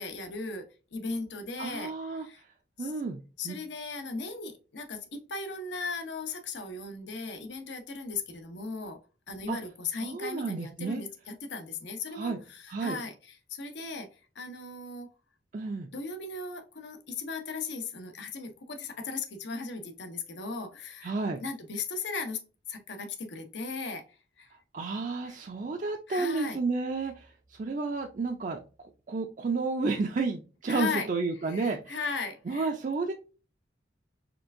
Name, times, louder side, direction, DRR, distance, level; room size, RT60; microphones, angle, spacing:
voice 1, 0.0-2.4 2.8-2.9 3.4-9.0 9.3-15.1 15.9-21.1 21.4-22.4 22.7-24.6 25.2-25.4 26.1-26.6 30.7-31.1 31.4-32.7, left 4 dB, 75° left, 0.8 m, -37 dB
voice 2, 1.6-2.3 2.8-3.2 3.4-3.6 9.5-9.6 10.0-11.0 12.1-12.4 12.7-13.0 15.5-15.9 21.0-21.4 24.7-28.6 29.1-32.0 32.5-33.1, right 4 dB, 45° right, 0.4 m, -31 dB
4.4 x 3.3 x 2.5 m
head